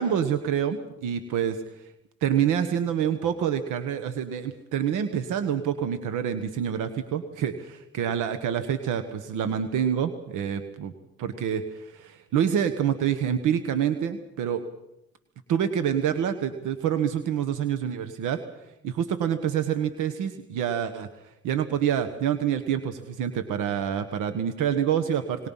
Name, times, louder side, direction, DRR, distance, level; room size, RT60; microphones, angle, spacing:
voice 1, 0.0-1.8 2.2-10.9 11.2-14.6 15.5-18.4 18.8-21.1 21.4-25.5, right 9 dB, 90° right, 9 dB, 1.3 m, -27 dB
25.0 x 20.5 x 5.6 m, 0.91 s
cardioid pair, 90°, 30 cm